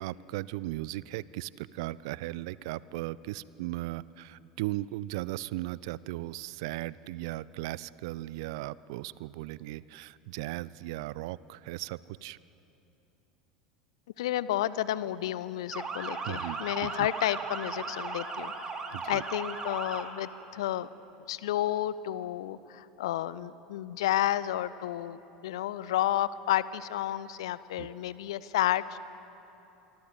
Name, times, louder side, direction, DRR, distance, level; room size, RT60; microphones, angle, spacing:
voice 1, 0.0-12.4 16.3-17.1 18.9-19.2 27.8-27.9, right 17 dB, 55° right, 20 dB, 0.5 m, -37 dB
voice 2, 14.2-18.5 19.1-20.9 21.3-29.0, left 13 dB, 60° left, 18 dB, 0.7 m, -31 dB
Motor vehicle (road) / Siren, 15.7-20.0, right 4 dB, 25° right, 3.2 m, -37 dB
27.0 x 23.5 x 8.1 m, 3.0 s
figure-of-eight pair, 75°, 3 cm